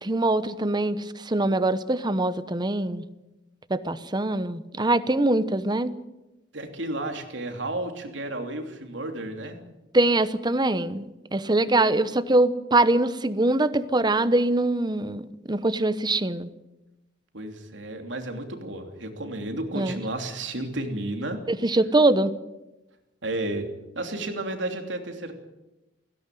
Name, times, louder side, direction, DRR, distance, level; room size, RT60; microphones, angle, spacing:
voice 1, 0.0-3.0 3.7-5.9 9.9-11.0 11.3-16.5 19.7-20.0 21.5-22.3, right 2 dB, 25° right, 14 dB, 1.0 m, -23 dB
voice 2, 6.5-9.6 17.3-21.4 23.2-23.7 23.9-25.3, right 2 dB, 90° right, 5 dB, 3.0 m, -32 dB
17.0 x 16.5 x 9.3 m, 0.99 s
head